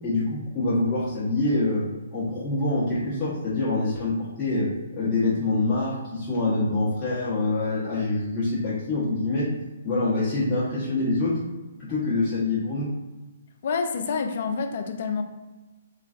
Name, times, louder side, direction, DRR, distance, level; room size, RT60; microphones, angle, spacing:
voice 1, 0.0-1.8 2.1-9.5 9.8-11.4 11.8-12.9, left 2 dB, 15° left, -13 dB, 1.0 m, -25 dB
voice 2, 13.6-15.2, left 5 dB, 55° left, 6 dB, 0.3 m, -27 dB
3.2 x 2.2 x 2.5 m, 1.2 s
figure-of-eight pair, 130°, 0 cm